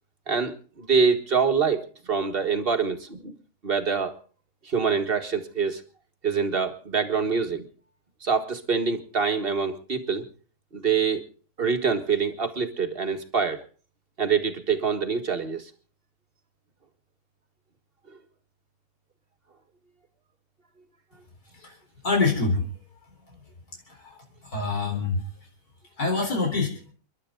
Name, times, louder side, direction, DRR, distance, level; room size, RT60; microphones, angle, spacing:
voice 1, 0.3-3.4 3.6-4.1 4.6-5.8 6.2-7.7 8.2-10.3 10.7-11.2 11.6-13.6 14.2-15.7, right 5 dB, 40° right, 6 dB, 1.9 m, -25 dB
voice 2, 22.0-22.7 23.9-24.1 24.4-25.2 26.0-26.7, left 3 dB, 85° left, 2 dB, 4.7 m, -25 dB
29.5 x 11.5 x 3.9 m, 0.41 s
omnidirectional pair, 1.6 m